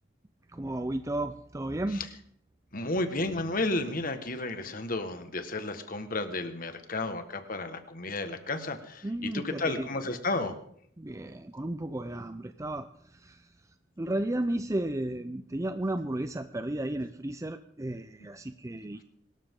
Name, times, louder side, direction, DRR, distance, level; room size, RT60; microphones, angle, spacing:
voice 1, 0.5-2.1 9.0-9.9 11.0-13.5 14.0-19.0, right 1 dB, 15° right, 10 dB, 0.5 m, -33 dB
voice 2, 2.7-10.5, left 2 dB, 45° left, 8 dB, 1.7 m, -32 dB
24.0 x 13.0 x 3.8 m, 0.66 s
head